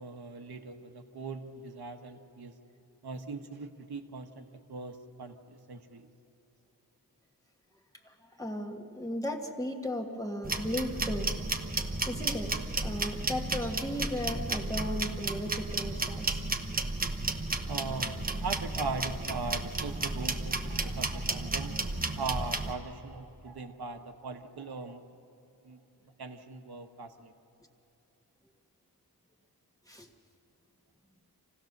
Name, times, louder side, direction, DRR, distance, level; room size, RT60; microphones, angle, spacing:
voice 1, 0.0-2.5 3.0-6.1 17.7-25.0 25.6-25.8 26.2-27.3, right 4 dB, 70° right, 5 dB, 1.2 m, -40 dB
voice 2, 8.0-11.3 12.1-12.5 12.8-16.4 29.9-30.1, left 1 dB, 10° left, 2 dB, 1.5 m, -36 dB
sound 1, 10.4-22.7, right 2 dB, 20° right, 1.0 m, -33 dB
26.5 x 16.5 x 6.6 m, 2.9 s
wide cardioid pair, 125°, 39 cm